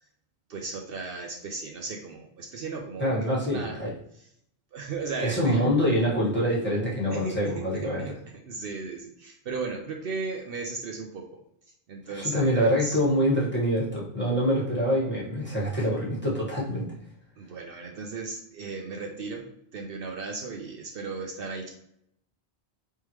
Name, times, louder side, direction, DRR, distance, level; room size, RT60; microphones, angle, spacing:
voice 1, 0.5-3.8 4.7-5.7 7.1-8.1 8.4-11.4 11.9-13.0 17.4-21.7, right 4 dB, 65° right, 1 dB, 0.8 m, -36 dB
voice 2, 3.0-3.9 5.2-8.0 12.1-16.9, equal, 10° left, -7 dB, 1.4 m, -25 dB
4.5 x 3.5 x 3.1 m, 0.73 s
omnidirectional pair, 1.1 m